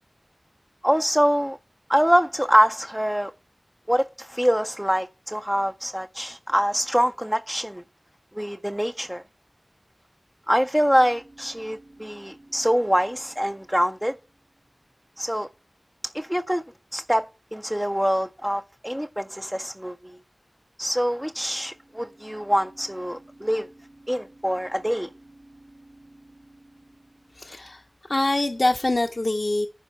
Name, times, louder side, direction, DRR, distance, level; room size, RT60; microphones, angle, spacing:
voice 1, 0.8-1.6 1.9-3.3 3.9-7.8 8.3-9.2 10.5-14.2 15.2-15.5 16.1-16.6 16.9-17.3 17.5-20.2 20.8-23.7 24.1-25.1, equal, 5° right, 0.4 m, -24 dB
sound 1, 10.8-14.9 21.0-28.0, right 1 dB, 60° right, 3.4 m, -53 dB
voice 2, 27.4-29.7, left 2 dB, 65° left, 0.6 m, -24 dB
10.0 x 5.4 x 4.4 m
wide cardioid pair, 50°, 0 cm